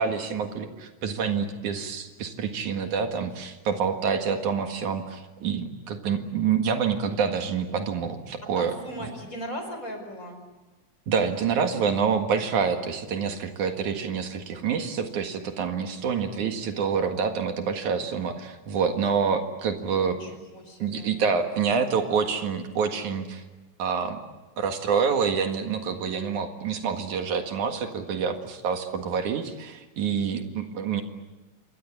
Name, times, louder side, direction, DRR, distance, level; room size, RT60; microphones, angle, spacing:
voice 1, 0.0-9.1 11.1-20.2 20.8-23.4 23.8-24.2 24.6-31.0, right 6 dB, 75° right, 5 dB, 3.2 m, -27 dB
voice 2, 8.5-10.4 20.0-21.2, equal, 25° left, 5 dB, 5.3 m, -38 dB
27.0 x 23.0 x 8.5 m, 1.1 s
omnidirectional pair, 3.5 m